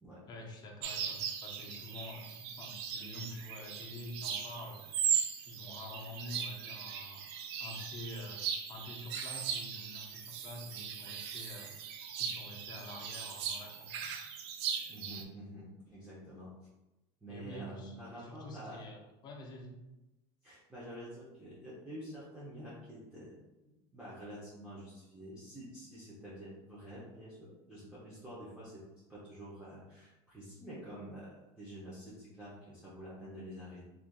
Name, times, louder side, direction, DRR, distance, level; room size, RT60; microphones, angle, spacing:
voice 1, 0.3-4.9 5.5-7.3 7.6-11.7 12.2-13.9 17.3-19.8, left 1 dB, 35° left, 0 dB, 0.6 m, -47 dB
sound 1, 0.8-15.2, right 8 dB, 85° right, 0.4 m, -38 dB
voice 2, 14.9-16.5 17.2-18.8 20.4-23.3 23.6-28.8 29.1-33.8, equal, 5° right, -10 dB, 0.7 m, -48 dB
3.3 x 2.5 x 2.2 m, 1.0 s
supercardioid pair, 125°, 13 cm